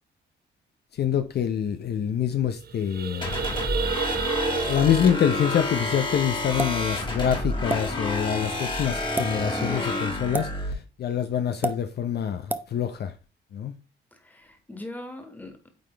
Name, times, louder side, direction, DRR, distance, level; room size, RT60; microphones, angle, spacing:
voice 1, 0.9-3.3 4.7-13.1 13.5-13.7, left 9 dB, 55° left, 0.6 m, -26 dB
sound 1, 1.6-1.7 1.9-2.1 2.5-6.8, right 6 dB, 50° right, 0.7 m, -31 dB
sound 2, 3.2-10.7, left 2 dB, 25° left, 1.8 m, -29 dB
sound 3, 6.6-6.8 7.7-7.8 9.0-9.3 10.3-10.5 11.6-11.8 12.5-12.7, right 2 dB, 10° right, 0.6 m, -27 dB
voice 2, 9.5-10.1 14.1-15.7, left 1 dB, 10° left, 1.8 m, -39 dB
8.9 x 3.8 x 3.3 m
cardioid pair, 90°, 20 cm